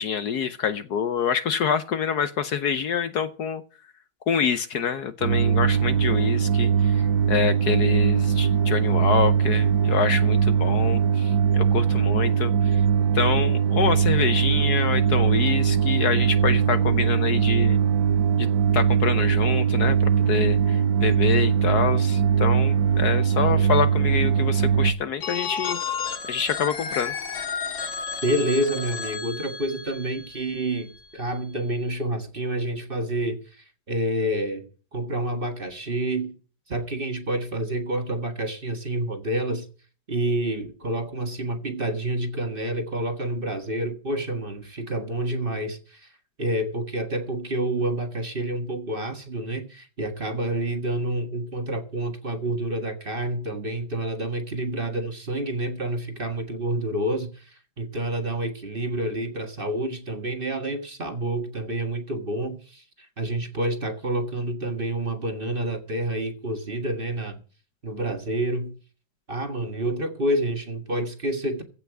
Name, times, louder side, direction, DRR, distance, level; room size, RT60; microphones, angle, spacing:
voice 1, 0.0-3.6 4.3-12.8 13.1-17.8 18.4-18.5 18.7-26.0 26.3-27.1, left 7 dB, 65° left, 1.3 m, -26 dB
sound 1, 5.2-24.9, right 7 dB, 75° right, 1.8 m, -21 dB
Telephone, 25.2-31.0, left 6 dB, 85° left, 2.5 m, -32 dB
voice 2, 28.2-34.7 34.9-36.3 36.7-39.7 40.1-46.1 46.4-67.4 67.8-68.8 69.3-71.6, right 1 dB, 30° right, 1.9 m, -28 dB
15.5 x 5.8 x 9.0 m
omnidirectional pair, 2.1 m